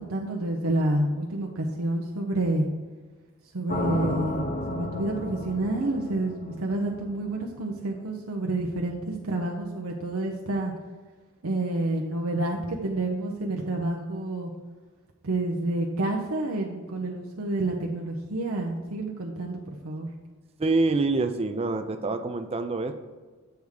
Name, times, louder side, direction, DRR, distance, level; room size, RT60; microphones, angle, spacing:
voice 1, 0.0-2.6 3.5-10.7 11.4-14.5 15.2-20.1, right 2 dB, 75° right, 0 dB, 0.7 m, -29 dB
sound 1, 3.7-7.8, left 1 dB, 35° left, 0.6 m, -33 dB
voice 2, 20.6-22.9, right 3 dB, 25° right, 7 dB, 0.4 m, -26 dB
7.8 x 3.5 x 6.4 m, 1.4 s
head